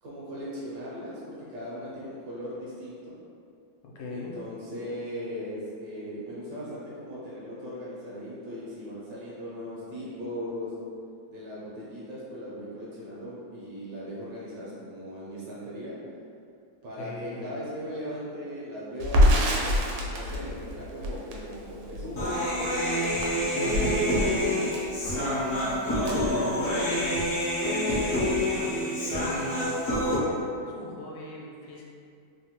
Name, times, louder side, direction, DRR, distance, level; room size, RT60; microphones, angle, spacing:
voice 1, 0.0-1.2 1.5-3.1 4.1-10.7 11.3-16.0 16.8-22.9 23.3-24.6 26.2-26.7, equal, 70° right, -7 dB, 1.2 m, -38 dB
voice 2, 3.8-4.3 16.9-17.5 23.5-24.4 26.0-26.5 27.3-29.3 29.9-31.8, left 3 dB, 80° left, -3 dB, 1.3 m, -39 dB
Crackle, 19.0-27.1 27.4-27.5 27.8-28.6, equal, 90° right, 1.4 m, -27 dB
Human voice, 22.1-30.2, equal, 60° left, 0.8 m, -27 dB
3.3 x 2.2 x 2.8 m, 2.4 s
omnidirectional pair, 2.2 m